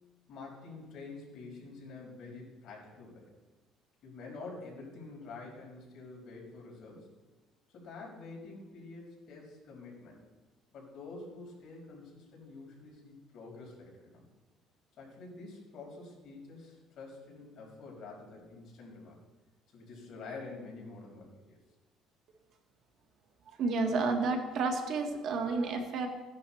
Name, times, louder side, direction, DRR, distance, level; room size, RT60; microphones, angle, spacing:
voice 1, 0.3-3.3 4.0-7.1 7.7-10.2 10.7-14.2 15.0-19.2 19.7-21.6, left 3 dB, 50° left, -3 dB, 5.5 m, -47 dB
voice 2, 23.6-26.1, right 3 dB, 55° right, 3 dB, 1.7 m, -30 dB
17.0 x 11.0 x 4.4 m, 1.2 s
cardioid pair, 145°, 0 cm